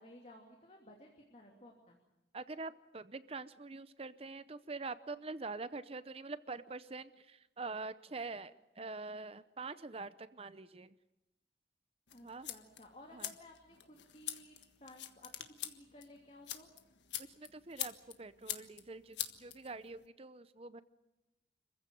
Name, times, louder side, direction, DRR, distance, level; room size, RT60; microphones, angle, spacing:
voice 1, 0.0-2.0 12.1-16.7, left 1 dB, 35° left, 1 dB, 2.8 m, -57 dB
voice 2, 2.3-10.9 12.2-12.5 13.1-13.3 17.2-20.8, right 3 dB, 35° right, 14 dB, 0.7 m, -45 dB
sound 1, 12.1-20.1, left 11 dB, 85° left, 1.5 m, -45 dB
26.5 x 15.5 x 9.0 m, 1.0 s
head